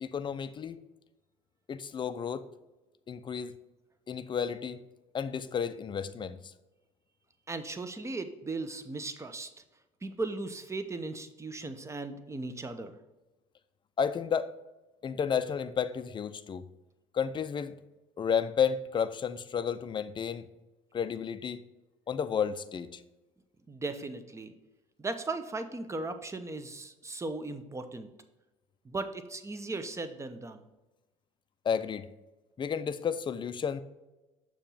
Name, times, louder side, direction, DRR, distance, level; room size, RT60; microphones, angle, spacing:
voice 1, 0.0-0.8 1.7-2.5 3.1-3.6 4.1-4.8 5.1-6.5 14.0-14.5 15.0-16.7 17.1-17.8 18.2-20.5 20.9-21.6 22.1-23.0 31.6-32.1 32.6-33.8, left 7 dB, 30° left, 12 dB, 0.5 m, -32 dB
voice 2, 7.5-9.5 10.0-13.0 23.7-24.5 25.0-28.1 28.8-30.6, right 3 dB, 15° right, 9 dB, 0.7 m, -37 dB
6.5 x 3.0 x 5.5 m, 1.1 s
hypercardioid pair, 70°, 16 cm